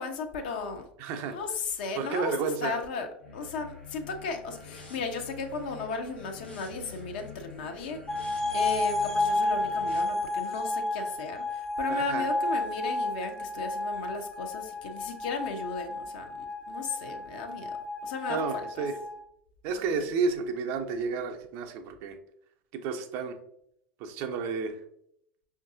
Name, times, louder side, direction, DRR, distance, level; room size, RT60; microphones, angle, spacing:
voice 1, 0.0-0.8 1.2-8.0 8.5-16.3 16.7-17.8 18.0-18.9 19.9-20.0, left 4 dB, 65° left, 5 dB, 0.6 m, -35 dB
voice 2, 1.0-1.4 2.0-2.8 11.9-12.3 18.3-19.0 19.6-22.2 22.7-23.4 24.0-24.8, right 5 dB, 50° right, 5 dB, 0.5 m, -31 dB
sound 1, 3.2-10.0, left 4 dB, 85° left, 0.9 m, -47 dB
sound 2, 8.1-19.2, left 2 dB, 5° left, 0.5 m, -31 dB
5.2 x 2.5 x 2.5 m, 0.73 s
figure-of-eight pair, 80°, 6 cm